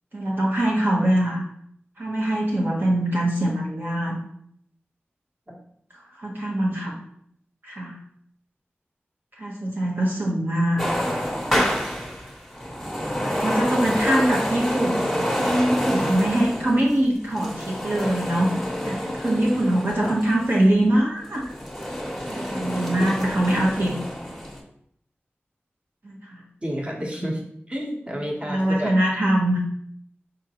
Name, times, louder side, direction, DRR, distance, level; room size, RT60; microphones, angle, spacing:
voice 1, 0.1-1.4 2.0-4.1 5.9-7.0 7.6-8.0 9.4-10.8 13.2-18.5 18.9-21.5 22.3-24.0 26.0-26.4 28.4-29.6, right 1 dB, 55° right, -3 dB, 0.9 m, -23 dB
sound 1, 10.8-20.6 21.2-24.6, equal, ahead, 1.0 m, -28 dB
voice 2, 26.6-27.4 27.7-28.9, equal, 25° right, -1 dB, 1.1 m, -30 dB
5.0 x 3.7 x 2.9 m, 0.69 s
wide cardioid pair, 75°, 4 cm